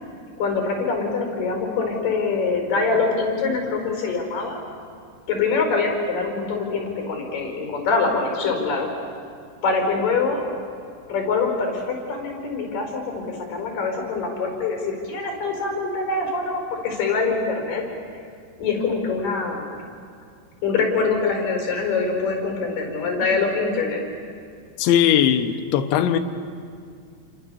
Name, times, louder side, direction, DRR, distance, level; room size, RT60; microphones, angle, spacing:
voice 1, 0.4-4.6 5.3-8.9 9.6-10.4 11.1-17.8 18.1-18.2 18.6-19.7 20.6-24.0, left 4 dB, 45° left, 2 dB, 6.2 m, -24 dB
voice 2, 24.8-26.2, left 10 dB, 75° left, 7 dB, 3.2 m, -19 dB
29.5 x 26.0 x 7.0 m, 2.3 s
omnidirectional pair, 5.8 m